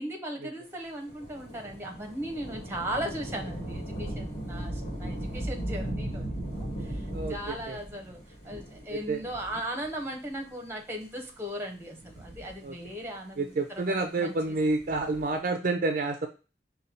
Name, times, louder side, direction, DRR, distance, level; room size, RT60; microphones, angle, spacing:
voice 1, 0.0-8.2 8.4-14.6, right 1 dB, 15° right, 1 dB, 1.0 m, -38 dB
Thunder / Rain, 1.1-10.0 10.8-10.9 11.8-13.1 14.6-15.4, right 1 dB, 40° left, 2.0 m, -37 dB
voice 2, 7.1-7.8 8.9-9.2 12.6-12.7 13.4-16.3, right 3 dB, 50° right, 5 dB, 0.5 m, -29 dB
5.1 x 2.3 x 4.2 m, 0.32 s
head